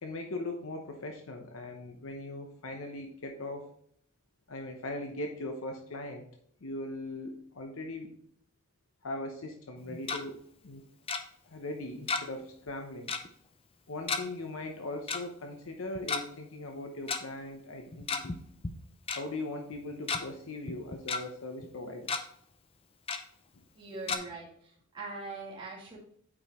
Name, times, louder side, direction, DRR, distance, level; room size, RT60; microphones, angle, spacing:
voice 1, 0.0-3.7 4.5-6.3 6.6-8.1 9.0-10.8 11.5-13.1 13.9-18.4 19.1-22.1 24.1-24.2, left 2 dB, 70° left, 3 dB, 0.8 m, -40 dB
Tick-tock, 9.8-10.2 11.1-11.2 12.1-12.4 12.7-12.8 13.1-13.3 14.1-14.2 15.1-15.2 16.0-16.2 17.1-17.2 17.9-18.4 18.6-18.7 19.1-19.2 19.8-20.2 20.7-21.2 21.6-21.7 22.0-22.2 23.1-23.2 24.1-24.2, left 4 dB, 25° left, 0.5 m, -32 dB
voice 2, 23.7-26.0, right 3 dB, 20° right, -6 dB, 2.1 m, -42 dB
8.5 x 4.9 x 3.0 m, 0.65 s
head